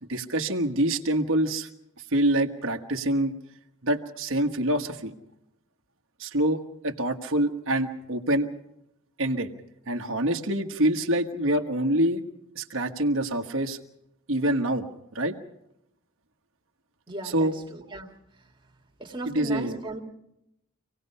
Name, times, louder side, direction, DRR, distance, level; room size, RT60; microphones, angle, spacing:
voice 1, 0.1-1.7 2.1-3.3 3.8-5.1 6.2-8.5 9.2-9.5 9.9-12.2 12.5-13.8 14.3-14.9 15.1-15.3 17.3-17.5 19.3-19.8, right 1 dB, 60° right, 4 dB, 1.4 m, -25 dB
voice 2, 17.1-18.5 19.0-20.0, right 2 dB, 20° right, 1 dB, 2.0 m, -37 dB
26.5 x 18.0 x 5.6 m, 0.83 s
head